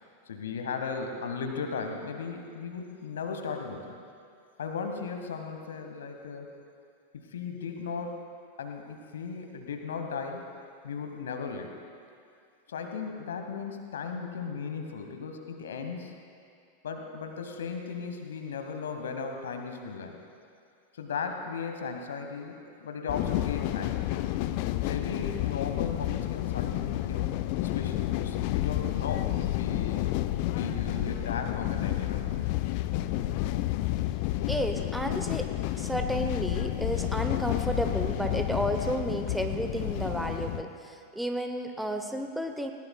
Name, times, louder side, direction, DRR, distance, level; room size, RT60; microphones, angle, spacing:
voice 1, 0.3-4.0 4.6-6.6 7.1-8.3 8.6-10.4 10.8-11.8 12.7-16.2 16.8-20.2 20.9-24.0 24.8-27.3 27.6-30.0 30.4-32.5, left 5 dB, 65° left, 5 dB, 1.3 m, -36 dB
sound 1, 23.1-40.6, left 15 dB, 45° left, 0.4 m, -30 dB
voice 2, 33.1-33.5 34.5-42.7, right 1 dB, 5° right, 5 dB, 0.8 m, -32 dB
19.5 x 18.0 x 2.3 m, 2.4 s
figure-of-eight pair, 90°, 0 cm